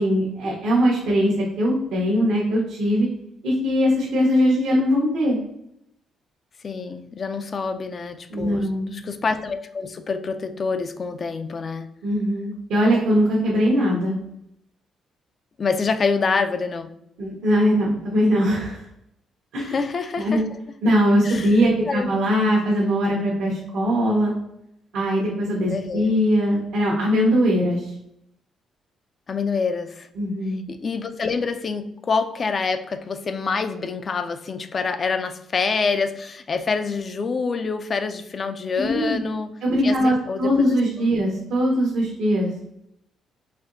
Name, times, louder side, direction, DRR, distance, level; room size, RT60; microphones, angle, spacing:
voice 1, 0.0-3.1 3.4-5.4 8.3-9.0 12.0-14.2 17.2-18.8 19.5-19.8 20.2-20.4 20.8-24.3 24.9-27.9 30.2-30.6 38.8-39.2 39.6-42.5, equal, 85° right, -6 dB, 1.0 m, -21 dB
voice 2, 6.6-8.7 8.9-11.9 15.6-16.9 19.6-20.6 21.2-21.5 21.9-22.1 25.7-26.1 29.3-30.1 30.7-39.5 39.8-41.1, left 4 dB, 45° left, 10 dB, 0.3 m, -26 dB
4.2 x 2.8 x 2.6 m, 0.77 s
cardioid pair, 90°, 0 cm